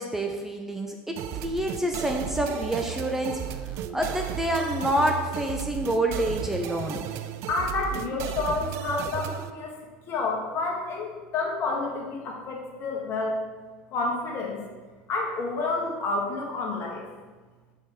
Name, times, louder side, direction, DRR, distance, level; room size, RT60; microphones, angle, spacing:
voice 1, 0.0-3.4 3.9-7.1, right 1 dB, 5° right, 2 dB, 0.6 m, -27 dB
sound 1, 1.2-9.5, right 10 dB, 60° right, 0.4 m, -34 dB
voice 2, 7.5-9.8 10.1-13.4 13.9-14.6 15.1-17.0, left 3 dB, 45° left, -1 dB, 1.6 m, -29 dB
5.0 x 4.1 x 5.4 m, 1.3 s
hypercardioid pair, 85°, 5 cm